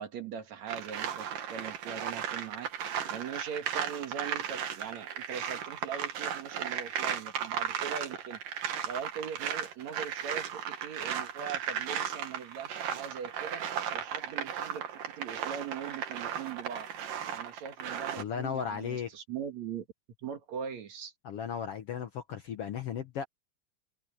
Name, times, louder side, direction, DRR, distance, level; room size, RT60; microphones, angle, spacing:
voice 1, 0.0-8.4 8.8-13.7 13.9-16.9 17.3-19.9 20.2-21.1, right 7 dB, 60° right, 2.8 m, -41 dB
sound 1, 0.7-18.2, right 8 dB, 80° right, 3.5 m, -36 dB
voice 2, 18.2-19.1 21.2-23.3, left 7 dB, 60° left, 1.6 m, -35 dB
open air
omnidirectional pair, 3.8 m